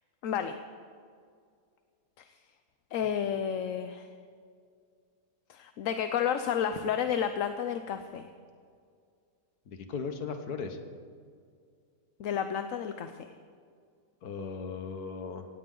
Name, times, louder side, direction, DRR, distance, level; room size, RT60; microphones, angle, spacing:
voice 1, 0.2-0.6 2.2-2.3 2.9-4.1 5.5-8.3 12.2-13.2, left 8 dB, 65° left, 9 dB, 1.0 m, -31 dB
voice 2, 9.7-10.8 14.2-15.5, left 5 dB, 90° left, 7 dB, 1.7 m, -37 dB
17.5 x 16.5 x 3.8 m, 2.2 s
omnidirectional pair, 1.6 m